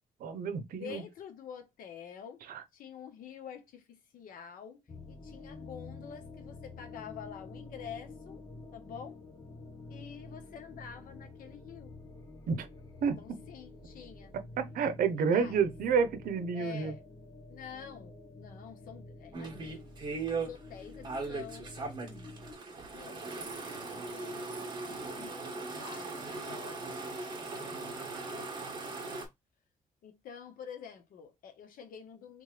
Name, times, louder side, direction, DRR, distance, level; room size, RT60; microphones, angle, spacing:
voice 1, 0.2-1.0 2.5-2.6 12.5-12.7 13.0-13.4 14.3-16.9, right 6 dB, 85° right, 0.7 m, -30 dB
voice 2, 0.8-2.4 2.7-8.4 8.7-9.2 9.9-11.9 13.2-14.3 15.2-15.6 16.5-17.0 17.5-19.9 20.3-22.1 22.9-24.6 24.9-27.9 28.2-28.7 30.0-32.4, left 8 dB, 85° left, 1.2 m, -48 dB
sound 1, 4.9-22.5, left 2 dB, 25° left, 0.9 m, -49 dB
sound 2, 19.3-20.5 21.0-29.2, right 3 dB, 30° right, 1.8 m, -39 dB
3.6 x 3.5 x 3.2 m
cardioid pair, 150°, 14 cm